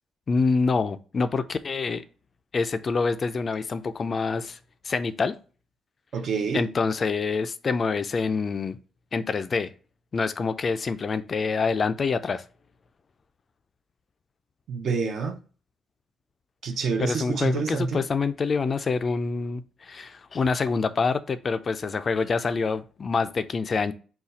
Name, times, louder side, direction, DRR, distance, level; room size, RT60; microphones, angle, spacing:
voice 1, 0.3-2.0 2.5-4.6 4.8-5.4 6.5-8.8 9.1-9.7 10.1-12.4 17.0-23.9, left 4 dB, 40° left, 0.3 m, -26 dB
voice 2, 6.1-6.6 14.7-15.4 16.6-18.0, right 5 dB, 65° right, 0.6 m, -27 dB
4.0 x 2.3 x 3.9 m
cardioid pair, 90°, 0 cm